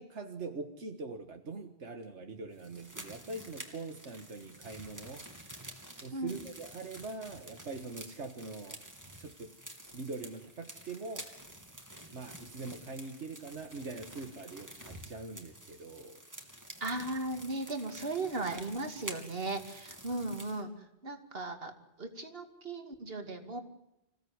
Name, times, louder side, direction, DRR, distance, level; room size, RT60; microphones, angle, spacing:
voice 1, 0.0-5.3 6.0-8.8 9.2-9.5 9.9-11.3 12.1-16.2, right 3 dB, 80° right, 5 dB, 1.9 m, -43 dB
sound 1, 2.6-20.6, right 1 dB, 15° right, 3.0 m, -49 dB
voice 2, 16.8-20.7 21.0-21.7 22.0-23.6, right 2 dB, 55° right, 6 dB, 2.7 m, -37 dB
27.0 x 17.0 x 9.6 m, 0.88 s
omnidirectional pair, 1.2 m